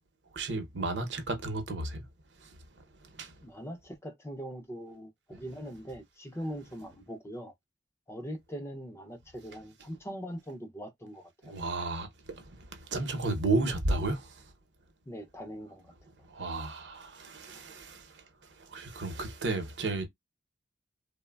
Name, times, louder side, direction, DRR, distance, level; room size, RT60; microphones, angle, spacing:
voice 1, 0.3-2.0 2.4-3.3 5.3-5.4 11.4-14.5 16.3-20.1, right 2 dB, 65° right, 0.7 m, -34 dB
voice 2, 3.4-7.5 8.1-11.5 13.5-13.6 15.1-15.9, equal, 15° left, 0.4 m, -41 dB
3.1 x 2.1 x 2.2 m
head